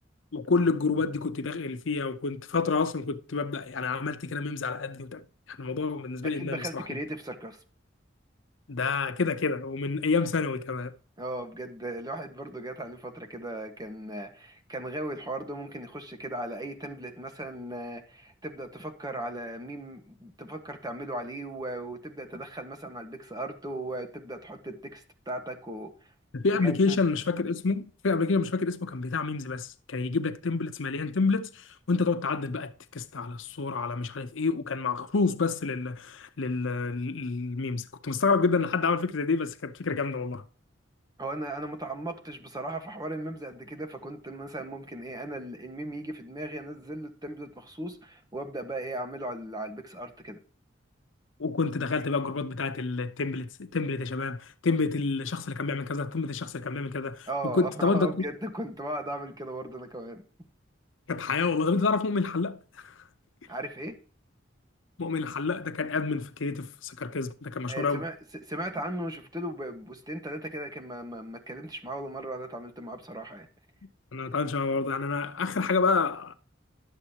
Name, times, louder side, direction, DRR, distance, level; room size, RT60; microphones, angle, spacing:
voice 1, 0.3-5.2 5.5-6.8 8.7-10.9 26.3-40.4 51.4-58.2 61.1-62.9 65.0-68.1 74.1-76.3, left 4 dB, 90° left, 0.7 m, -28 dB
voice 2, 6.2-7.6 11.2-25.9 26.6-27.0 41.2-50.4 57.3-60.2 63.5-64.0 67.7-73.5, right 1 dB, 20° right, 1.4 m, -37 dB
11.5 x 7.2 x 2.9 m
head